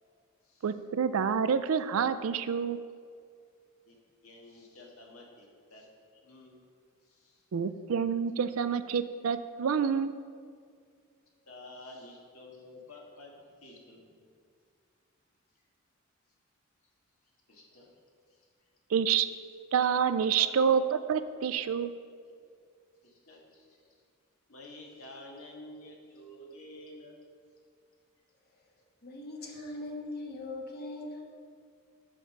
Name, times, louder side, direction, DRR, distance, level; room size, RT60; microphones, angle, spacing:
voice 1, 0.6-2.8 7.5-10.2 18.9-19.3 19.7-21.9, right 7 dB, 70° right, 12 dB, 0.4 m, -28 dB
voice 2, 4.2-6.6 7.0-7.4 11.5-13.3 13.6-14.3 17.5-17.9 18.3-18.5 20.3-20.6 23.0-23.9 24.5-27.2, left 1 dB, 75° left, -1 dB, 1.7 m, -50 dB
voice 3, 29.0-31.2, left 2 dB, 50° left, 1 dB, 1.3 m, -40 dB
7.2 x 5.4 x 5.8 m, 2.1 s
head